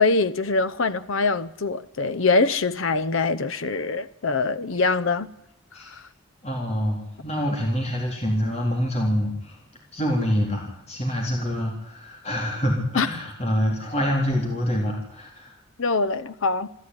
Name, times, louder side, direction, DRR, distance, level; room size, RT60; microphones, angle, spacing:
voice 1, 0.0-5.3 5.9-6.0 13.0-13.1 15.8-16.7, left 3 dB, 75° left, 0.8 m, -23 dB
voice 2, 6.4-9.6 9.9-15.6, equal, 30° left, 4.0 m, -26 dB
27.5 x 13.5 x 9.7 m
head